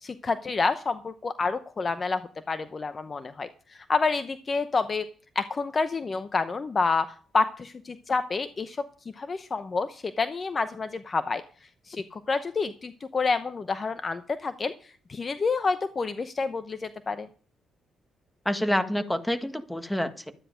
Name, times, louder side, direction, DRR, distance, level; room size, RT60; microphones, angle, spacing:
voice 1, 0.0-2.2 2.5-5.0 5.3-8.8 9.2-11.4 11.9-14.7 15.1-17.3, left 4 dB, 35° left, 11 dB, 0.8 m, -28 dB
voice 2, 18.4-20.3, left 1 dB, 10° left, 9 dB, 1.5 m, -27 dB
12.5 x 9.8 x 5.1 m, 0.41 s
cardioid pair, 85°, 0 cm